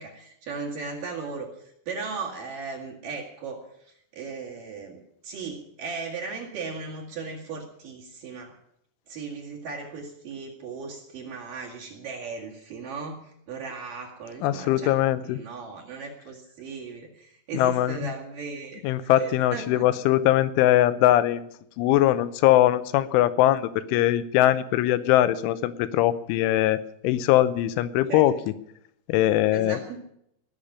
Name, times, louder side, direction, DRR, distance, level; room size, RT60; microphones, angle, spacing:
voice 1, 0.0-8.6 9.1-14.9 15.2-19.9 28.1-28.2 29.5-30.0, right 4 dB, 50° right, -3 dB, 3.2 m, -37 dB
voice 2, 14.4-15.4 17.5-18.1 18.8-21.4 21.8-28.3 29.1-29.8, left 13 dB, 80° left, 14 dB, 3.1 m, -21 dB
19.0 x 6.8 x 9.7 m, 0.73 s
omnidirectional pair, 5.8 m